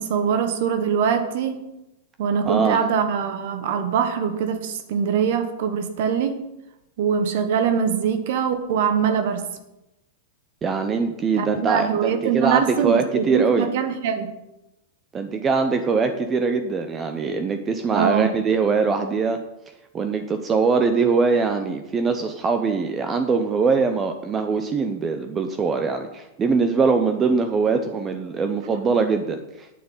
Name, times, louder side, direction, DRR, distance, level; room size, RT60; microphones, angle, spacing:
voice 1, 0.0-1.6 2.2-6.4 7.0-9.4 11.4-14.3 17.9-18.3, right 7 dB, 60° right, 8 dB, 1.2 m, -23 dB
voice 2, 2.4-2.8 10.6-13.7 15.1-19.4 19.9-29.7, right 4 dB, 20° right, 7 dB, 0.7 m, -22 dB
8.9 x 7.6 x 7.2 m, 0.93 s
supercardioid pair, 145°, 0 cm